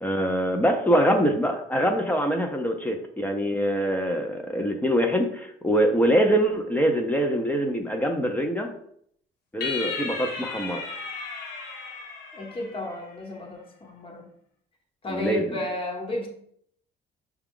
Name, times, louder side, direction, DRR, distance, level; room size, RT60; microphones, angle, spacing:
voice 1, 0.0-8.7 9.5-10.8 15.1-15.6, equal, 10° left, 0.6 m, -24 dB
sound 1, 9.6-13.2, left 4 dB, 85° left, 1.3 m, -35 dB
voice 2, 12.3-14.3 15.0-16.3, left 2 dB, 30° left, 1.1 m, -33 dB
5.8 x 2.3 x 3.7 m
cardioid pair, 110°, 17 cm